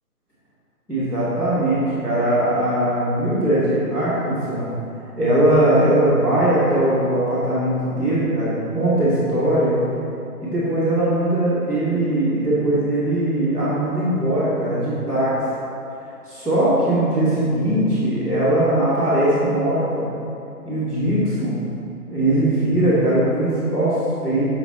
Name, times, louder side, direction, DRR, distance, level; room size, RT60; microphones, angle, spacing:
voice 1, 0.9-4.6 5.2-9.7 10.4-15.4 16.2-20.0 20.6-21.6 22.1-24.5, right 1 dB, 5° left, -21 dB, 0.8 m, -20 dB
8.7 x 5.9 x 4.0 m, 2.7 s
figure-of-eight pair, 150°, 47 cm